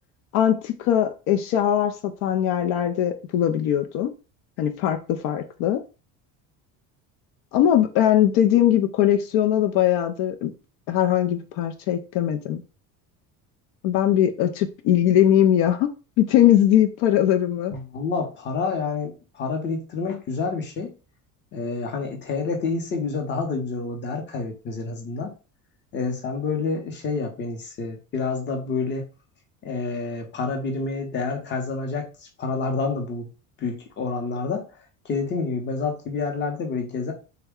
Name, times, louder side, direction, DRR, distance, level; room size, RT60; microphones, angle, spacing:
voice 1, 0.3-1.9 2.2-4.1 4.6-5.8 7.5-10.5 10.9-12.6 13.8-17.7, left 11 dB, 75° left, 0.5 m, -20 dB
voice 2, 17.7-20.9 21.5-25.3 25.9-29.1 29.6-33.3 33.6-34.6 35.0-37.1, left 4 dB, 30° left, 0.7 m, -28 dB
3.4 x 2.1 x 3.5 m
cardioid pair, 155°, 39 cm